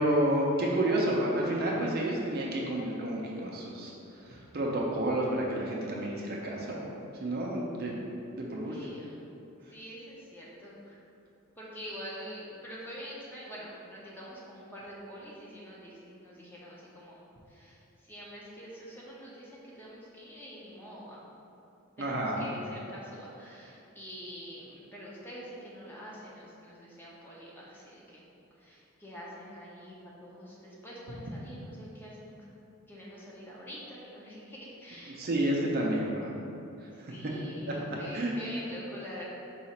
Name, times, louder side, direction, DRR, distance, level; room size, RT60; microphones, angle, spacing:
voice 1, 0.0-3.9 4.3-6.9 7.2-8.0 8.4-8.8 22.0-22.5 35.2-36.4 37.0-37.1 38.1-38.3, right 1 dB, 45° right, -2 dB, 0.5 m, -30 dB
voice 2, 8.7-9.2 9.7-11.0 11.6-17.2 17.5-21.2 22.0-28.2 28.6-30.0 30.2-32.4 32.9-35.3 37.0-39.2, equal, 10° left, -6 dB, 0.6 m, -45 dB
4.8 x 2.4 x 4.2 m, 2.8 s
head